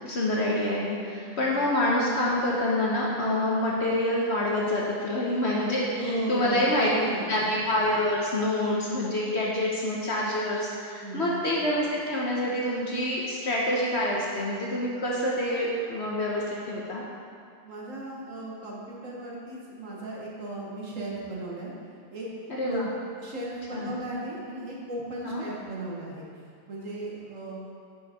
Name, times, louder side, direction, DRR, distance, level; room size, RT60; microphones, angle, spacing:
voice 1, 0.1-6.9 7.3-17.0 22.6-22.8 23.7-23.9 25.3-25.4, left 1 dB, 50° left, -4 dB, 1.0 m, -27 dB
voice 2, 6.0-7.5 11.0-11.4 17.6-21.7 22.1-22.3 22.6-22.8 23.2-26.3 26.7-27.6, right 1 dB, 55° right, -4 dB, 1.5 m, -35 dB
9.4 x 5.5 x 3.6 m, 2.3 s
omnidirectional pair, 1.7 m